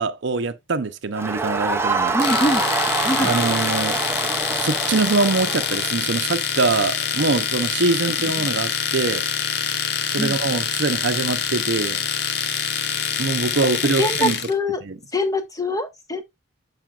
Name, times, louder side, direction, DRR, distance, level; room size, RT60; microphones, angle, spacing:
voice 1, 0.0-2.1 3.2-4.0 4.5-9.3 10.1-12.0 13.2-14.4 14.8-15.0, right 3 dB, 60° right, 0.6 m, -23 dB
Crowd, 1.1-6.0, right 3 dB, 10° right, 0.5 m, -25 dB
voice 2, 2.1-2.6 3.0-3.3 10.2-10.4 14.0-14.8 15.1-16.2, left 1 dB, 15° left, 0.9 m, -23 dB
Domestic sounds home sounds, 2.2-14.5, left 7 dB, 55° left, 0.7 m, -25 dB
7.4 x 5.6 x 2.3 m
head